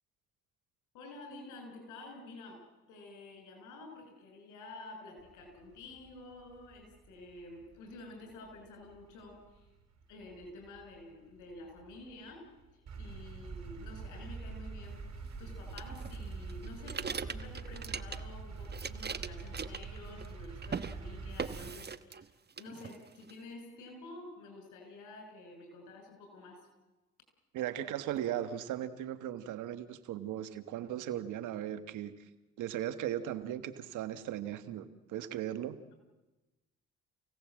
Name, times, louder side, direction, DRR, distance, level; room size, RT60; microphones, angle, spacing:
voice 1, 0.9-2.6 2.9-9.8 10.1-26.7, left 2 dB, 85° left, 4 dB, 7.0 m, -50 dB
sound 1, 5.2-21.8, right 4 dB, 60° right, 5.5 m, -45 dB
sound 2, 15.8-18.4 18.7-20.4 20.6-21.0 21.4-22.3 22.6-23.3, right 6 dB, 35° right, 1.1 m, -40 dB
voice 2, 27.5-32.3 32.6-35.8, right 11 dB, 85° right, 13 dB, 1.5 m, -37 dB
29.0 x 17.5 x 7.6 m, 1.1 s
supercardioid pair, 60°, 30 cm